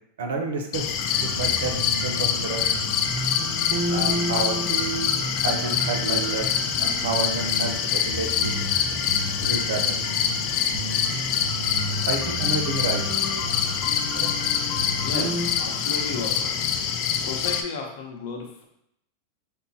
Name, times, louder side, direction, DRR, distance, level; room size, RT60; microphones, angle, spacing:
voice 1, 0.2-0.9 1.1-1.7 2.0-2.6 3.9-4.6 5.4-6.5 6.8-8.5 9.4-9.9 12.1-13.0 14.1-14.3, right 4 dB, 85° right, 3 dB, 0.7 m, -29 dB
sound 1, 0.7-17.6, left 8 dB, 40° left, 0.4 m, -25 dB
sound 2, 1.0-17.6, left 1 dB, 5° left, 1.0 m, -41 dB
sound 3, 1.2-2.4 2.7-7.8 8.1-10.5 10.7-15.5, right 1 dB, 60° right, 1.1 m, -32 dB
voice 2, 15.0-16.6 17.1-18.6, left 4 dB, 65° left, 1 dB, 0.9 m, -34 dB
5.4 x 2.2 x 4.1 m, 0.76 s
supercardioid pair, 155°, 0 cm